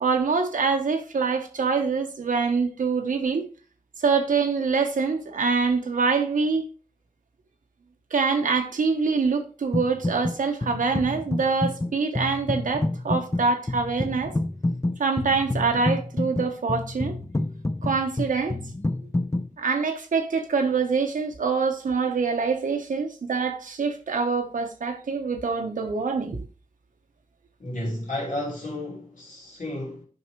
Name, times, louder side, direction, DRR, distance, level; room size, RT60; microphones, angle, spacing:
voice 1, 0.0-3.5 4.0-6.7 8.1-14.3 15.0-17.2 17.8-18.6 19.6-26.4, right 4 dB, 85° right, 1.1 m, -25 dB
sound 1, 9.7-10.4 10.6-19.5, left 2 dB, 20° left, 0.6 m, -28 dB
voice 2, 27.6-30.1, left 1 dB, 75° left, 2.8 m, -32 dB
9.5 x 5.5 x 3.1 m
cardioid pair, 60°, 13 cm